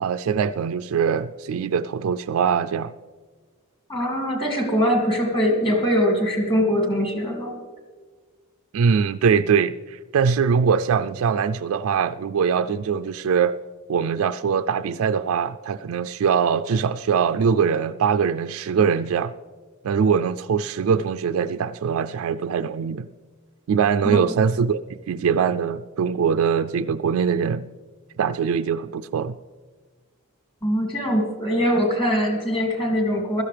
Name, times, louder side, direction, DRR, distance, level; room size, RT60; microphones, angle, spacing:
voice 1, 0.0-2.9 8.7-13.6 13.9-19.3 19.8-23.1 23.7-24.8 25.1-27.6 28.2-29.4, right 6 dB, 70° right, 0.3 m, -22 dB
voice 2, 3.9-7.6 24.1-24.2 30.6-33.4, equal, 25° left, 2.5 m, -22 dB
16.0 x 13.0 x 3.3 m
head